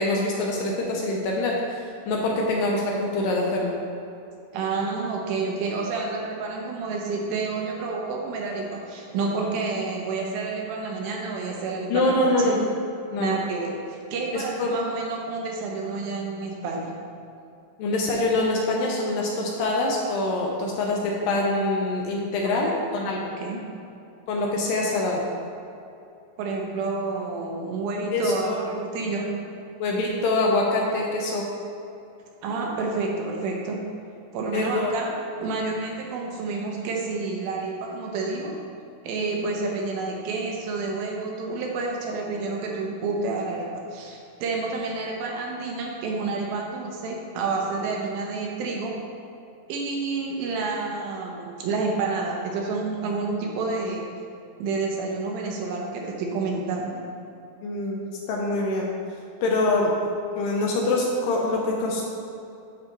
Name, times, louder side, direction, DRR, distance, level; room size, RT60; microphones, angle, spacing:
voice 1, 0.0-1.8 2.1-3.7 11.9-12.7 13.1-13.4 14.3-14.8 17.8-23.3 24.3-25.3 28.1-28.6 29.8-31.5 34.5-34.9 39.2-39.4 57.6-58.9 59.4-59.9 60.4-62.0, left 2 dB, 75° left, -1 dB, 2.2 m, -24 dB
voice 2, 4.5-12.6 13.2-16.9 22.6-22.7 23.4-23.6 26.4-29.3 32.4-33.8 34.3-35.1 35.4-38.5 39.0-49.0 49.7-54.0 54.6-57.0, right 3 dB, 75° right, -1 dB, 2.6 m, -29 dB
11.0 x 4.7 x 3.0 m, 2.7 s
omnidirectional pair, 4.4 m